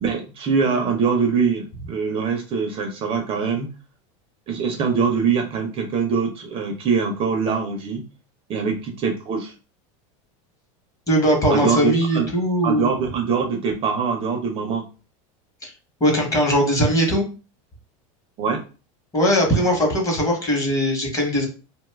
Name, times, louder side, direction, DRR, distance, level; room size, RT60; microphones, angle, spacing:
voice 1, 0.0-3.7 4.5-8.0 8.5-9.5 11.5-12.3 12.6-14.8 18.4-18.6, right 5 dB, 30° right, 3 dB, 0.5 m, -23 dB
voice 2, 11.1-12.9 15.6-15.7 16.0-17.3 19.1-21.5, equal, 20° left, 0 dB, 1.0 m, -20 dB
2.6 x 2.3 x 3.3 m, 0.34 s
supercardioid pair, 140°, 18 cm